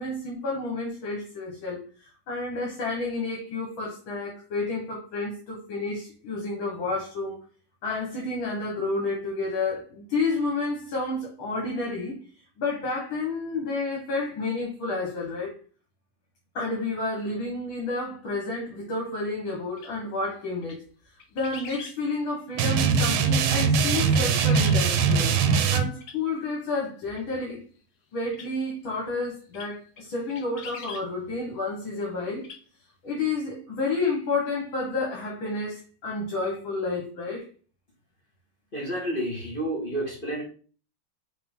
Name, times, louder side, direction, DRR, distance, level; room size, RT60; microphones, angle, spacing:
voice 1, 0.0-1.8 2.3-7.4 7.8-12.2 12.6-15.5 16.5-20.8 21.3-25.3 25.7-27.6 28.1-32.4 33.0-37.4, left 3 dB, 70° left, -1 dB, 2.4 m, -30 dB
sound 1, 19.8-19.9 20.6-20.8 21.2-22.0 23.1-23.3 23.9-24.8 26.0-26.2 27.2-27.3 28.3-28.5 29.5-29.7 30.0-30.1 30.3-31.0 32.3-32.6 32.9-33.0, left 5 dB, 55° left, 1.4 m, -42 dB
sound 2, 22.6-25.8, right 6 dB, 80° right, 1.6 m, -21 dB
voice 2, 38.7-40.4, right 1 dB, 25° left, -4 dB, 2.0 m, -30 dB
6.1 x 3.8 x 5.5 m, 0.40 s
omnidirectional pair, 2.3 m